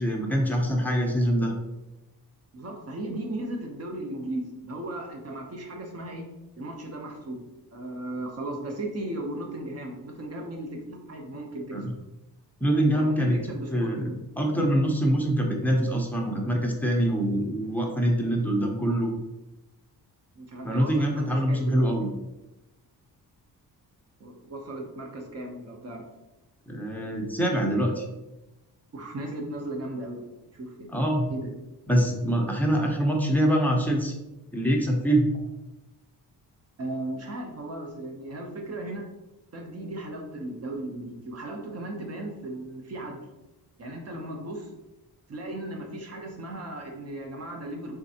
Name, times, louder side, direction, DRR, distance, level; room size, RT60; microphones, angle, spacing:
voice 1, 0.0-1.6 11.7-11.9 12.6-13.4 13.7-19.1 20.6-22.1 26.7-28.0 30.9-31.2 31.9-34.1 34.5-35.3, right 1 dB, 5° left, 0 dB, 0.6 m, -24 dB
voice 2, 2.5-6.3 6.6-7.4 7.7-11.9 12.8-14.1 20.4-21.9 24.2-26.1 28.9-31.0 31.3-31.5 36.8-39.1 39.5-43.2 43.8-44.7 45.3-48.0, right 1 dB, 40° right, 2 dB, 0.8 m, -36 dB
3.8 x 3.2 x 2.8 m, 0.99 s
cardioid pair, 110°, 37 cm